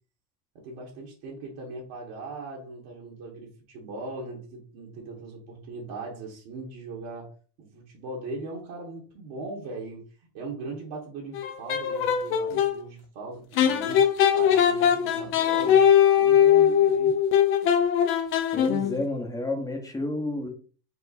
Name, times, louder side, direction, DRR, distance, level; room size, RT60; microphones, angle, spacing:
voice 1, 0.5-7.3 7.6-10.0 10.3-14.0 14.3-15.9 16.1-17.2, right 3 dB, 55° right, -3 dB, 1.5 m, -39 dB
sound 1, 11.3-12.8 13.6-19.0, left 9 dB, 30° left, 0.4 m, -21 dB
voice 2, 18.5-20.5, left 2 dB, 5° left, 3 dB, 0.7 m, -30 dB
4.5 x 2.1 x 4.1 m, 0.39 s
supercardioid pair, 125°, 49 cm